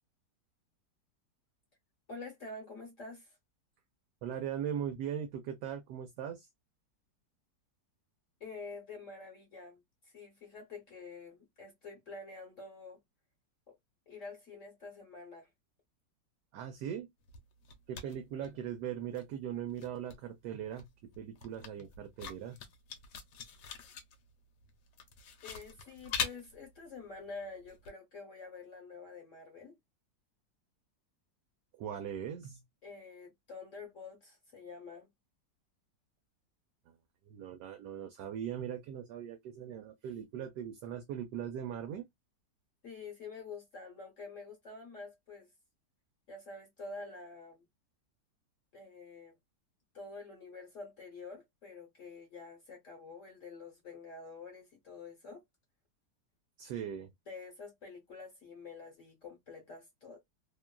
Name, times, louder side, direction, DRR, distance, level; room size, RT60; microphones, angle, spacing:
voice 1, 2.1-3.4 8.4-13.0 13.7-13.8 14.1-15.5 25.4-29.8 32.8-35.1 42.8-45.5 46.3-47.7 48.7-49.4 49.9-55.4 57.3-60.2, left 4 dB, 50° left, 1.1 m, -48 dB
voice 2, 4.2-6.5 16.5-17.1 17.9-22.6 31.8-32.6 36.9-37.0 37.3-42.1 56.6-57.1, right 9 dB, 75° right, 1.1 m, -40 dB
sound 1, 17.2-18.9 19.1-27.9, left 6 dB, 75° left, 1.2 m, -43 dB
2.9 x 2.3 x 2.2 m
omnidirectional pair, 1.9 m